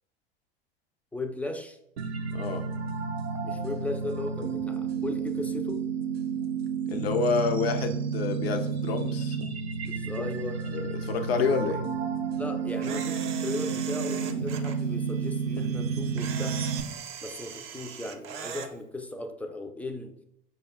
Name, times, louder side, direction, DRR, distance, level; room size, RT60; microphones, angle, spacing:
voice 1, 1.1-1.8 3.4-5.8 9.8-10.6 12.3-16.6 17.2-20.2, left 2 dB, 5° left, 5 dB, 0.3 m, -36 dB
sound 1, 2.0-16.8, right 6 dB, 85° right, 0.5 m, -31 dB
voice 2, 2.3-2.7 6.9-9.4 10.7-11.9, left 5 dB, 80° left, 6 dB, 0.6 m, -28 dB
Camera, 12.8-14.8 16.2-18.7, right 7 dB, 45° right, 0.6 m, -39 dB
5.2 x 2.3 x 3.4 m, 0.78 s
hypercardioid pair, 85°, 30 cm